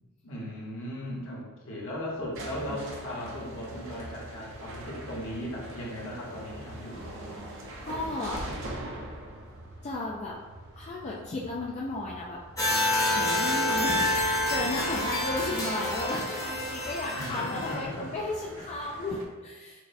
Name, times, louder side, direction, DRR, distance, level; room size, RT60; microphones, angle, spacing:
voice 1, 0.2-7.0 17.1-18.1, left 1 dB, 60° left, -4 dB, 1.0 m, -37 dB
sound 1, 1.9-19.2, right 1 dB, 60° right, 0.7 m, -42 dB
voice 2, 7.5-8.4 9.8-10.4 10.8-12.4 12.8-19.9, left 2 dB, 30° left, -3 dB, 0.3 m, -34 dB
sound 2, 12.6-17.8, left 1 dB, 15° left, 0.7 m, -28 dB
6.1 x 2.1 x 2.6 m, 1.3 s
head